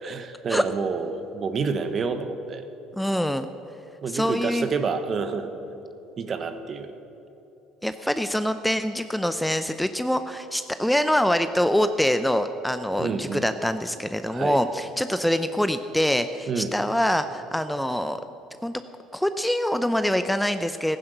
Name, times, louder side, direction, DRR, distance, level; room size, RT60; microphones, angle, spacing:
voice 1, 0.0-2.6 4.0-5.5 6.2-6.9 13.0-13.4 14.3-14.6 16.5-16.7, right 5 dB, 45° right, 9 dB, 1.2 m, -28 dB
voice 2, 2.9-3.5 4.1-4.7 7.8-18.2 18.6-18.8 19.1-21.0, equal, 5° left, 10 dB, 0.6 m, -24 dB
15.0 x 10.5 x 6.7 m, 2.9 s
hypercardioid pair, 70°, 0 cm